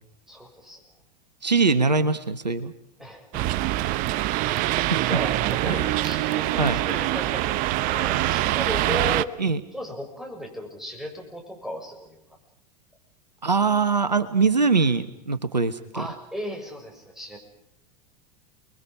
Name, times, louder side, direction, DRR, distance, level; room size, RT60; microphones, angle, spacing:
voice 1, 0.3-0.8 3.0-3.4 4.9-9.3 9.7-12.2 15.9-17.4, left 1 dB, ahead, 1 dB, 6.8 m, -36 dB
voice 2, 1.4-2.7 4.7-5.2 5.7-5.9 6.6-6.8 9.4-9.6 13.4-16.1, right 4 dB, 85° right, 13 dB, 1.2 m, -23 dB
sound 1, 3.3-9.2, right 15 dB, 40° right, 0.8 m, -24 dB
29.5 x 22.0 x 5.5 m, 0.80 s
figure-of-eight pair, 85°, 21 cm